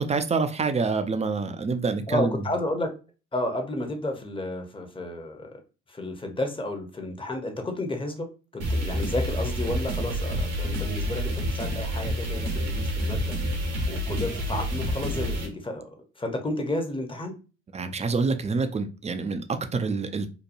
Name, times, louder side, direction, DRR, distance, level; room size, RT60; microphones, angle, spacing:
voice 1, 0.0-2.4 17.7-20.3, right 4 dB, 20° right, 9 dB, 0.4 m, -27 dB
voice 2, 2.1-2.9 3.3-5.6 5.9-8.3 8.5-15.9 16.2-17.4, left 1 dB, 15° left, 4 dB, 0.8 m, -32 dB
sound 1, 8.6-15.5, equal, 75° right, 1.0 m, -28 dB
2.9 x 2.2 x 2.5 m, 0.33 s
hypercardioid pair, 45°, 33 cm